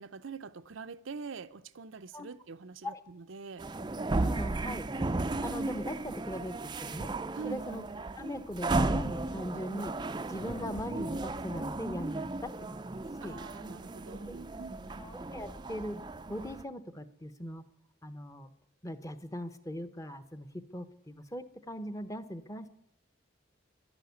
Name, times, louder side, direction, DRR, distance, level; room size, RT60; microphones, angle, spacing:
voice 1, 0.0-3.7 7.3-7.6 13.2-14.8, right 5 dB, 70° right, 0.6 m, -44 dB
sound 1, 3.6-16.6, right 2 dB, 20° right, 0.5 m, -35 dB
voice 2, 4.2-5.1 5.4-7.1 7.4-7.9 8.2-9.9 10.3-12.5 12.8-13.4 14.3-14.4 15.0-16.0 16.3-17.6 18.0-18.5 18.8-22.7, equal, 15° left, 0.9 m, -40 dB
12.0 x 11.5 x 9.5 m
head